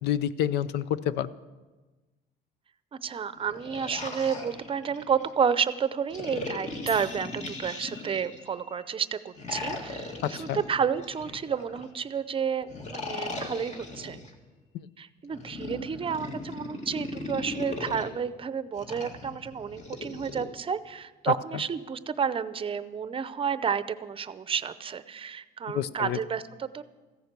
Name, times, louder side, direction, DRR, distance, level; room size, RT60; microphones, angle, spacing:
voice 1, 0.0-1.3 10.2-10.6 14.7-14.9 21.3-21.4 25.7-26.2, left 10 dB, 80° left, 16 dB, 0.6 m, -28 dB
voice 2, 2.9-14.2 15.0-26.8, right 7 dB, 30° right, 14 dB, 0.6 m, -31 dB
sound 1, 3.4-5.3 6.1-8.5 9.3-11.9 12.7-14.3 15.3-18.1 18.8-20.4, left 2 dB, 45° left, 2.1 m, -38 dB
sound 2, 6.9-13.4, left 2 dB, 20° left, 4.0 m, -51 dB
15.0 x 10.5 x 6.7 m, 1.2 s
cardioid pair, 110°, 17 cm